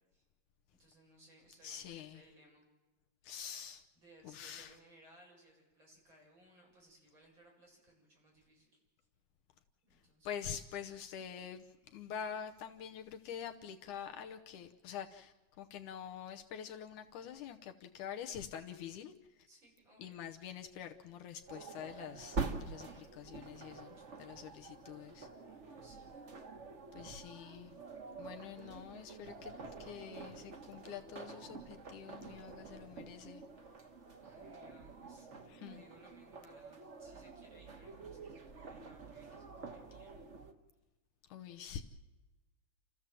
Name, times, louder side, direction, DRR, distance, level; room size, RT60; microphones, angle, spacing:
voice 1, 0.8-2.7 4.0-8.7 9.8-10.3 10.8-10.9 19.5-20.3 22.5-23.2 25.4-26.2 33.6-33.8 34.2-35.3 35.7-40.2, right 1 dB, 35° right, -2 dB, 8.5 m, -63 dB
voice 2, 1.6-2.2 3.2-3.8 4.2-4.8 9.9-19.5 20.0-25.3 26.9-27.7 28.2-29.5 29.8-33.4 35.5-35.8 41.3-41.8, left 8 dB, 75° left, 5 dB, 2.3 m, -46 dB
sound 1, 21.5-40.5, right 4 dB, 85° right, 0.6 m, -47 dB
29.5 x 14.5 x 7.6 m, 1.2 s
omnidirectional pair, 3.8 m